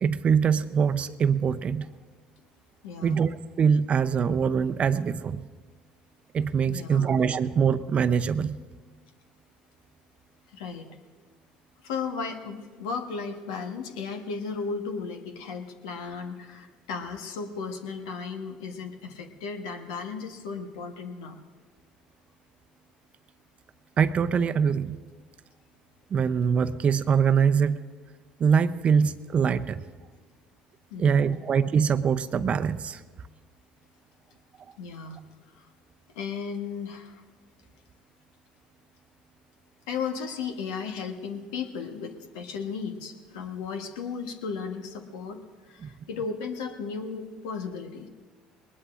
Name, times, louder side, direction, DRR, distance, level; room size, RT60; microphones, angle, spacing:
voice 1, 0.0-1.9 3.0-5.4 6.3-8.6 24.0-25.0 26.1-27.8 28.4-29.8 31.0-33.0 45.8-45.9, right 6 dB, 40° right, 11 dB, 0.7 m, -23 dB
voice 2, 2.8-3.2 6.7-7.1 10.5-10.9 11.8-21.4 30.9-31.4 34.8-35.2 35.5-35.6 36.1-37.2 39.9-45.4 45.7-48.1, left 5 dB, 80° left, 5 dB, 1.3 m, -35 dB
21.0 x 20.0 x 2.6 m, 1.4 s
hypercardioid pair, 70°, 3 cm